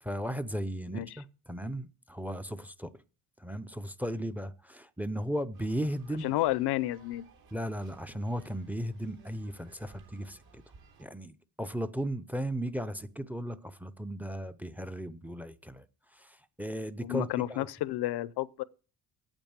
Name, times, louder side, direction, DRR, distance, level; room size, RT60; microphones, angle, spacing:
voice 1, 0.0-2.9 3.4-6.3 7.5-10.6 11.0-15.9 16.1-17.7, equal, 5° right, 0.6 m, -36 dB
sound 1, 5.5-11.1, right 4 dB, 65° right, 3.6 m, -59 dB
voice 2, 6.2-7.3 17.0-18.6, left 15 dB, 75° left, 0.7 m, -31 dB
8.9 x 8.5 x 8.9 m
cardioid pair, 105°, 40 cm